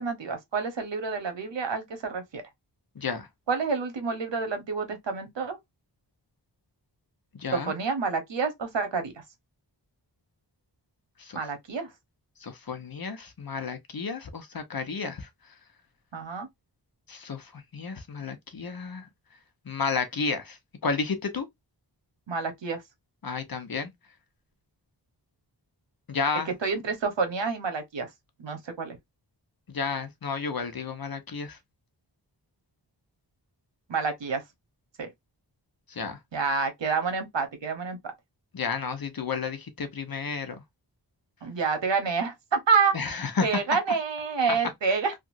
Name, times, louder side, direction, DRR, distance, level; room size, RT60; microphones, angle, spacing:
voice 1, 0.0-2.4 3.5-5.6 7.5-9.1 11.3-11.9 16.1-16.5 22.3-22.8 26.6-28.1 28.4-29.0 33.9-34.4 35.0-35.1 36.3-38.0 41.4-42.9 43.4-45.1, right 5 dB, 80° right, 1.0 m, -28 dB
voice 2, 3.0-3.3 7.4-7.7 11.2-11.4 12.4-15.3 17.1-19.1 19.7-20.6 20.8-21.5 23.2-23.9 26.1-26.5 29.7-31.6 35.9-36.2 38.5-40.5 42.9-43.8 44.5-44.6, left 5 dB, 55° left, 0.8 m, -31 dB
2.9 x 2.5 x 2.5 m
wide cardioid pair, 50°, 43 cm